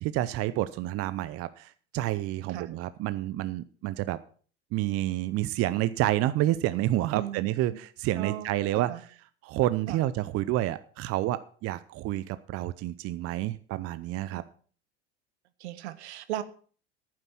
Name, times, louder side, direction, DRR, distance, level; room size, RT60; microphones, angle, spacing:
voice 1, 0.0-4.2 4.7-8.9 9.4-14.4, right 15 dB, 45° right, 14 dB, 0.7 m, -29 dB
voice 2, 7.1-7.8 8.2-9.0 9.9-10.0 14.3-14.4 15.6-16.4, right 13 dB, 75° right, 14 dB, 1.2 m, -37 dB
11.0 x 9.6 x 5.8 m, 0.43 s
hypercardioid pair, 90°, 34 cm